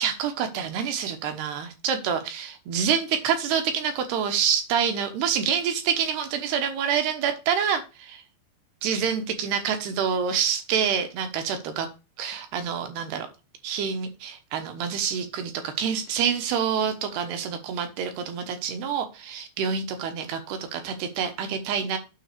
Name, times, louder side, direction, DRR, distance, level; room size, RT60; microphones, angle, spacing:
voice 1, 0.0-8.2 8.8-11.9 12.2-13.3 13.6-22.0, right 7 dB, 70° right, 7 dB, 3.0 m, -27 dB
9.3 x 3.9 x 6.7 m, 0.29 s
omnidirectional pair, 5.1 m